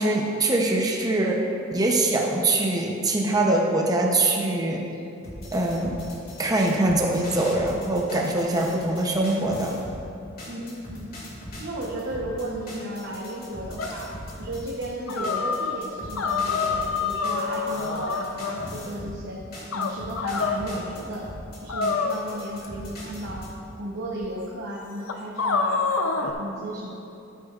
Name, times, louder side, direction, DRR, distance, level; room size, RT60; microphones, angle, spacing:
voice 1, 0.0-4.8 5.5-6.0 6.4-9.8, right 2 dB, 20° right, -1 dB, 0.7 m, -23 dB
sound 1, 5.2-10.0 10.4-19.2 19.5-23.5, left 1 dB, 50° left, 2.1 m, -40 dB
voice 2, 10.5-11.2 11.5-14.1 14.4-19.4 19.7-21.3 21.6-23.5 23.8-26.9, right 1 dB, 60° right, -3 dB, 0.9 m, -34 dB
sound 2, 13.8-14.0 15.1-15.8 16.2-18.7 19.7-20.6 21.7-22.7 23.6-23.7 24.2-24.3 25.1-26.3, left 5 dB, 90° left, 0.6 m, -26 dB
12.5 x 8.3 x 2.4 m, 2.7 s
head